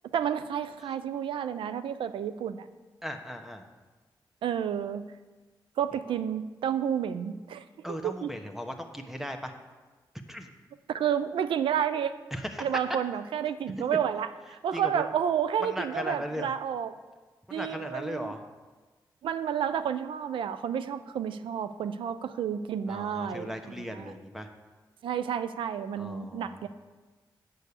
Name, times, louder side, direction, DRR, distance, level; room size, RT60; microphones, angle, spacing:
voice 1, 0.1-2.7 4.4-5.0 5.8-8.3 10.9-12.1 12.6-16.9 17.5-18.3 19.2-24.1 25.0-26.7, right 8 dB, 85° right, 12 dB, 0.4 m, -30 dB
voice 2, 3.0-3.7 7.8-9.5 10.3-10.5 12.3-12.6 14.7-15.1 15.6-16.5 17.5-18.4 22.9-24.5 26.0-26.6, equal, 5° right, 5 dB, 1.1 m, -37 dB
8.2 x 5.3 x 6.7 m, 1.3 s
cardioid pair, 50°, 8 cm